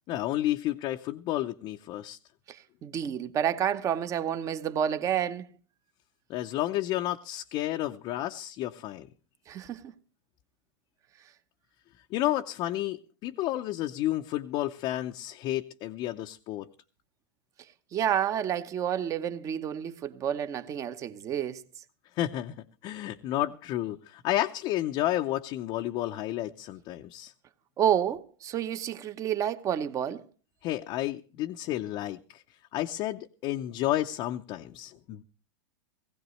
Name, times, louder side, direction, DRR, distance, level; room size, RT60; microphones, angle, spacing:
voice 1, 0.1-2.2 6.3-9.1 12.1-16.7 22.2-22.5 22.8-27.3 30.6-32.4 32.7-35.2, left 14 dB, 35° left, 0.6 m, -31 dB
voice 2, 2.5-5.5 9.5-9.9 17.9-21.6 27.8-30.2, right 9 dB, 25° right, 0.9 m, -29 dB
19.0 x 16.0 x 3.1 m
supercardioid pair, 145°, 13 cm